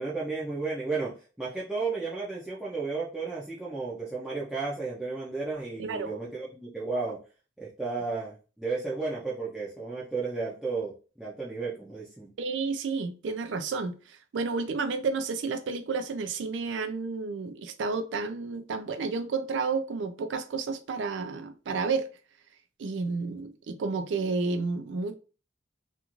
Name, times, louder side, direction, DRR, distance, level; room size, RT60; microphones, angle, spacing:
voice 1, 0.0-7.2 7.6-12.3, right 4 dB, 5° right, 0.5 m, -33 dB
voice 2, 5.8-6.1 12.4-22.1 22.8-25.1, right 4 dB, 70° right, 0.4 m, -31 dB
2.5 x 2.4 x 2.9 m
head